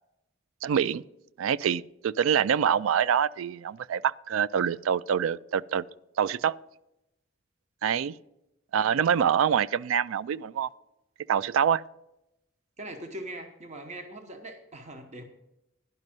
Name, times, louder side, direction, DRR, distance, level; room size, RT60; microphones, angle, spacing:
voice 1, 0.6-1.0 1.4-5.8 6.2-6.6 7.8-8.1 8.7-10.7 11.3-11.8, right 8 dB, 90° right, 0.3 m, -25 dB
voice 2, 12.8-15.2, right 1 dB, 35° right, 0.9 m, -41 dB
11.0 x 5.3 x 7.5 m
head